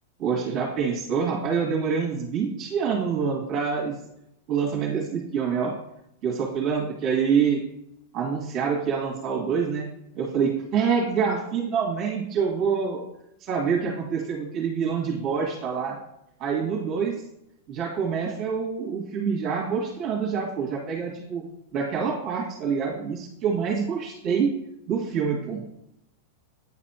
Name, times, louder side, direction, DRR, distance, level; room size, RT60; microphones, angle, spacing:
voice 1, 0.2-3.9 4.5-5.7 6.2-7.6 8.1-9.9 10.2-13.0 13.4-16.0 16.4-17.1 17.7-21.4 21.7-24.5 24.9-25.6, right 6 dB, 40° right, -3 dB, 2.0 m, -26 dB
9.7 x 4.1 x 2.9 m, 0.80 s
figure-of-eight pair, 95°, 0 cm